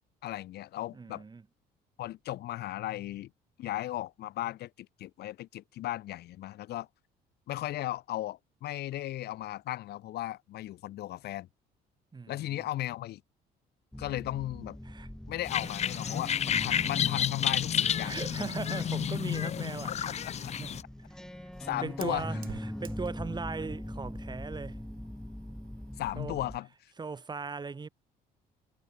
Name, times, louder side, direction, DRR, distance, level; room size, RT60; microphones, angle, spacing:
voice 1, 0.2-1.2 2.0-3.3 3.6-6.9 7.5-11.5 12.3-13.2 14.0-14.8 15.3-18.5 20.4-20.5 21.6-22.4 26.0-26.9, left 14 dB, 70° left, 4.3 m, -36 dB
voice 2, 0.9-1.4 12.1-12.6 14.8-15.1 15.6-16.2 16.7-16.8 18.0-20.9 21.2-21.5 21.8-24.8 26.2-26.4 27.0-27.9, right 4 dB, 25° right, 7.1 m, -39 dB
sound 1, 13.9-26.6, left 1 dB, 5° left, 2.8 m, -42 dB
sound 2, 15.4-20.8, left 9 dB, 40° left, 0.7 m, -31 dB
Fire, 20.9-26.2, right 11 dB, 60° right, 5.2 m, -52 dB
cardioid pair, 110°, 17 cm